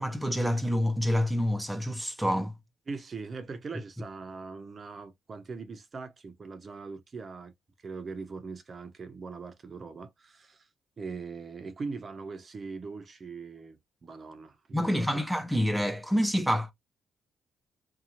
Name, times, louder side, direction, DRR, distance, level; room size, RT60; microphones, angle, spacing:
voice 1, 0.0-2.5 14.7-16.7, equal, ahead, 0.6 m, -27 dB
voice 2, 2.9-7.5 7.8-10.7 11.0-15.3, right 4 dB, 40° right, 0.7 m, -41 dB
2.8 x 2.3 x 2.6 m
cardioid pair, 90°, 0 cm